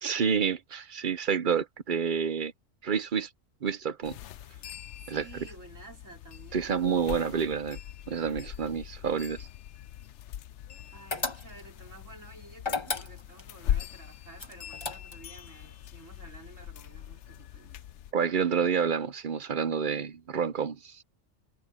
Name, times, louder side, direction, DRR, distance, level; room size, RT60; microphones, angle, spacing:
voice 1, 0.0-2.5 2.8-3.3 3.6-4.2 5.1-5.2 6.5-7.8 8.1-9.5 18.1-21.0, right 6 dB, 45° right, 0.8 m, -29 dB
sound 1, 4.0-18.1, left 11 dB, 70° left, 0.9 m, -40 dB
voice 2, 5.0-7.0 10.9-17.9, right 2 dB, 80° right, 5.6 m, -52 dB
sound 2, 11.1-11.8 12.6-13.5 14.4-15.4, left 3 dB, 25° left, 1.3 m, -34 dB
omnidirectional pair, 1.3 m